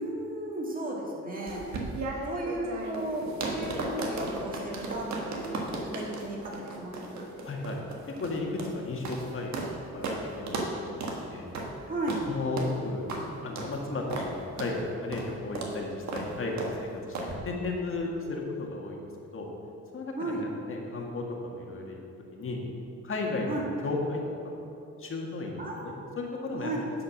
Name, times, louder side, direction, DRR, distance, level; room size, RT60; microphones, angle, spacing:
voice 1, 0.0-1.6 2.1-7.3 11.9-12.2 18.2-18.4 20.2-20.5 23.5-23.6 25.6-26.0 26.6-26.8, right 1 dB, 30° right, -3 dB, 2.4 m, -35 dB
sound 1, 1.5-9.7 10.0-10.2 10.5-10.7 11.0-11.2 11.5-11.7 12.1-12.2 12.6-12.7 13.1-13.2 13.6-13.7 14.1-14.3 14.6-14.7 15.1-15.3 15.6-15.7 16.1-16.3 16.6-16.7 17.1-17.3, right 3 dB, 65° right, 1.6 m, -35 dB
voice 2, 7.4-7.8 8.2-10.9 11.2-11.4 12.2-13.1 13.4-19.0 19.3-19.5 19.9-22.0 22.3-22.6 23.0-24.2 25.0-26.7, left 2 dB, 45° left, 0 dB, 1.8 m, -34 dB
10.5 x 5.1 x 6.4 m, 2.8 s
cardioid pair, 90°, 30 cm